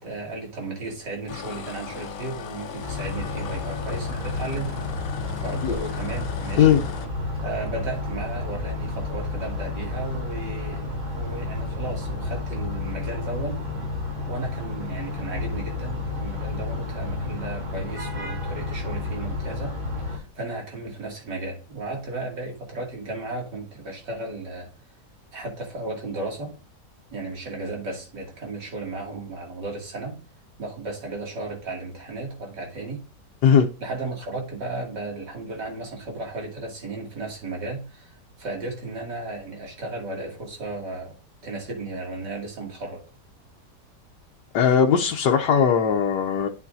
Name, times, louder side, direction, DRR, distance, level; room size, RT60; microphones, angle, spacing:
voice 1, 0.0-4.7 5.4-6.7 7.4-13.6 14.3-19.7 20.0-24.7 25.3-26.5 27.1-30.2 30.6-33.0 33.8-41.2 41.4-43.0, right 2 dB, 90° right, 3.1 m, -34 dB
sound 1, 1.3-7.1, left 6 dB, 65° left, 1.1 m, -37 dB
sound 2, 2.8-20.2, left 3 dB, 65° right, 3.8 m, -31 dB
sound 3, 5.9-12.7, right 7 dB, 10° right, 2.8 m, -41 dB
voice 2, 44.5-46.5, left 7 dB, 80° left, 1.4 m, -18 dB
8.5 x 8.4 x 2.7 m
omnidirectional pair, 1.8 m